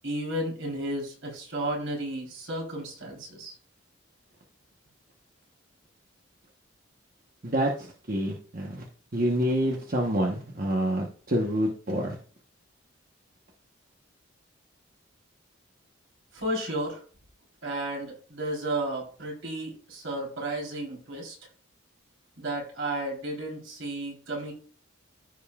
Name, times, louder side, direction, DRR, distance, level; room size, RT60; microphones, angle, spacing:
voice 1, 0.0-3.6 16.3-17.0 17.6-21.4 22.4-24.5, right 1 dB, 70° right, -1 dB, 3.6 m, -33 dB
voice 2, 7.4-8.9 9.1-12.2, equal, 40° right, 0 dB, 1.0 m, -27 dB
14.5 x 5.4 x 2.4 m, 0.41 s
head